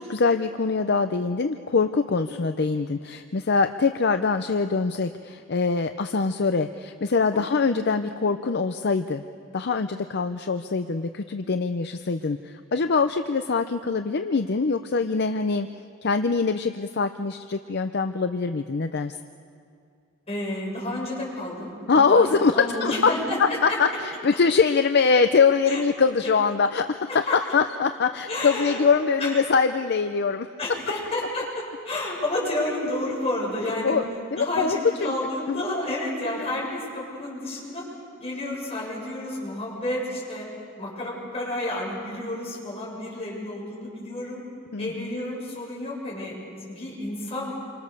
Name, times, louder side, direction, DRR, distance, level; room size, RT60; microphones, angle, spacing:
voice 1, 0.0-9.2 9.5-15.7 16.0-19.1 21.9-23.1 23.6-27.1 27.5-30.5 33.8-34.0 34.3-35.1 35.5-35.6 44.7-45.1, left 4 dB, 55° left, 8 dB, 0.6 m, -23 dB
voice 2, 7.3-7.7 20.3-23.8 25.7-25.8 27.1-27.4 28.3-28.8 29.2-29.3 30.6-34.0 34.4-37.8 38.2-40.5 40.8-44.4 44.8-47.5, left 1 dB, 30° left, -4 dB, 7.6 m, -30 dB
28.0 x 25.5 x 6.7 m, 2.4 s
head